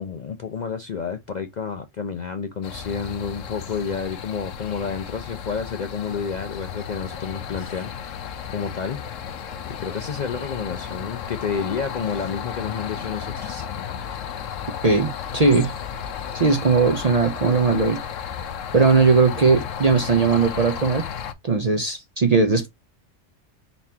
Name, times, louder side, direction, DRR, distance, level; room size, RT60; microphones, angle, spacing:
voice 1, 0.0-8.2 8.5-9.0 9.7-13.7, left 6 dB, 55° left, 0.5 m, -30 dB
sound 1, 2.6-21.3, left 8 dB, 85° left, 1.1 m, -34 dB
voice 2, 14.8-15.7 16.3-18.0 18.7-21.1 21.5-22.7, right 4 dB, 45° right, 0.5 m, -19 dB
4.0 x 3.5 x 2.7 m
omnidirectional pair, 1.3 m